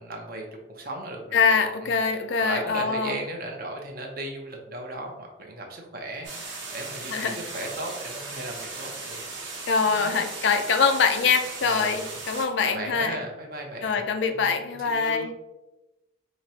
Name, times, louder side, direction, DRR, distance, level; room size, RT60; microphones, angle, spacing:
voice 1, 0.0-1.5 1.8-1.9 2.4-6.3 6.7-9.2 9.9-10.2 11.7-11.9 12.6-14.0 14.3-14.5 14.8-15.3, right 2 dB, 50° right, 1 dB, 0.6 m, -36 dB
voice 2, 1.3-3.2 7.1-7.4 9.7-13.2 13.8-15.3, left 5 dB, 70° left, 7 dB, 0.4 m, -24 dB
sound 1, 6.2-12.4, right 3 dB, 75° right, 0.9 m, -37 dB
4.8 x 2.0 x 2.8 m, 1.0 s
head